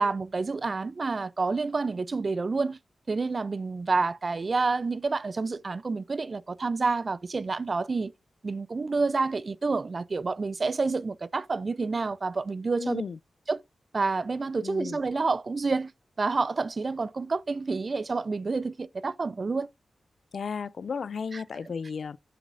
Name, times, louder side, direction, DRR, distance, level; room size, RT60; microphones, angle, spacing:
voice 1, 0.0-2.8 3.1-8.1 8.4-13.0 13.5-13.6 13.9-15.9 16.2-19.7 21.3-21.4, right 4 dB, 45° right, 0.4 m, -28 dB
voice 2, 12.8-13.2 14.6-15.0 20.3-22.2, left 6 dB, 70° left, 0.3 m, -34 dB
7.7 x 6.2 x 2.5 m
wide cardioid pair, 90°, 0 cm